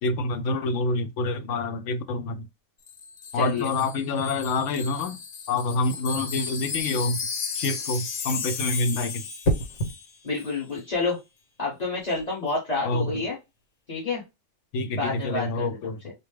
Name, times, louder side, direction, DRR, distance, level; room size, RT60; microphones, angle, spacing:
voice 1, 0.0-2.5 3.3-5.2 5.5-7.2 7.6-9.2 12.9-13.2 14.7-16.0, left 3 dB, 90° left, 0.9 m, -27 dB
Wind chime, 2.9-10.1 10.3-10.5, left 5 dB, 55° left, 0.8 m, -34 dB
voice 2, 3.3-3.7 10.2-11.2 11.6-13.4 13.9-14.2 14.9-16.1, left 3 dB, 35° left, 1.6 m, -29 dB
sound 1, 9.4-10.0 11.9-12.2, right 1 dB, 70° left, 1.4 m, -27 dB
4.3 x 2.3 x 3.2 m
omnidirectional pair, 1.2 m